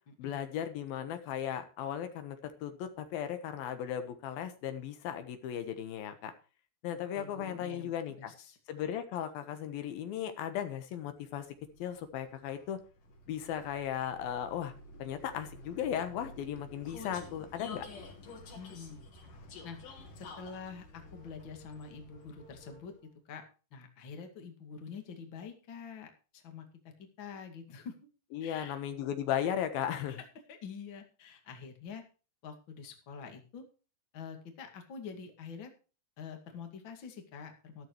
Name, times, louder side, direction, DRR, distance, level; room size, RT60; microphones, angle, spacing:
voice 1, 0.2-6.3 6.8-8.3 8.7-11.5 11.8-12.8 13.3-14.7 15.0-17.9 28.3-30.2, left 9 dB, 80° left, 9 dB, 3.1 m, -36 dB
voice 2, 7.1-8.6 18.5-19.0 19.6-19.8 20.2-22.9 23.3-23.4 23.7-26.7 27.0-27.9 28.4-28.7 29.9-32.0 32.4-33.6 34.1-35.7 36.2-37.9, left 6 dB, 35° left, 5 dB, 2.5 m, -46 dB
Vehicle, 11.2-23.1, left 2 dB, 65° left, 4.3 m, -50 dB
13.5 x 12.5 x 3.1 m, 0.34 s
omnidirectional pair, 4.2 m